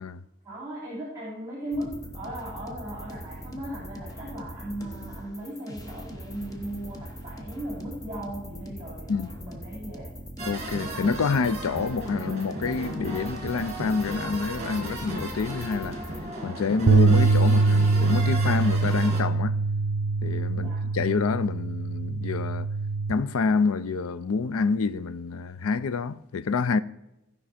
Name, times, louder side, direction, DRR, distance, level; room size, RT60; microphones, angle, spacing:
voice 1, 0.4-10.1 20.5-20.8, right 1 dB, 15° right, 3.1 m, -37 dB
sound 1, 1.7-16.2, equal, 15° left, 1.0 m, -41 dB
sound 2, 10.4-19.2, right 1 dB, 30° right, 2.1 m, -35 dB
voice 2, 10.5-16.0 16.4-19.6 20.2-22.7 23.1-26.8, left 4 dB, 80° left, 0.5 m, -27 dB
sound 3, 16.9-23.1, right 3 dB, 75° right, 0.5 m, -23 dB
15.5 x 5.4 x 4.2 m
head